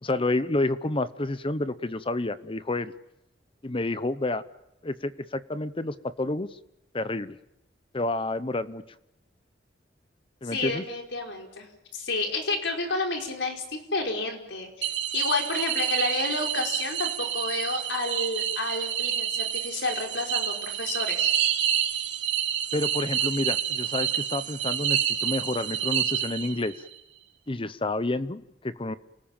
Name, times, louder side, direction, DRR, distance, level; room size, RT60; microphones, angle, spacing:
voice 1, 0.0-2.9 3.6-4.4 4.8-6.6 6.9-7.4 7.9-8.8 10.4-10.8 22.7-26.9 27.5-29.0, left 2 dB, 30° left, 14 dB, 0.9 m, -29 dB
voice 2, 10.4-21.3, left 3 dB, 80° left, 3 dB, 4.9 m, -30 dB
sound 1, 14.8-26.8, right 10 dB, 70° right, 3.3 m, -28 dB
28.5 x 19.0 x 8.9 m, 0.88 s
head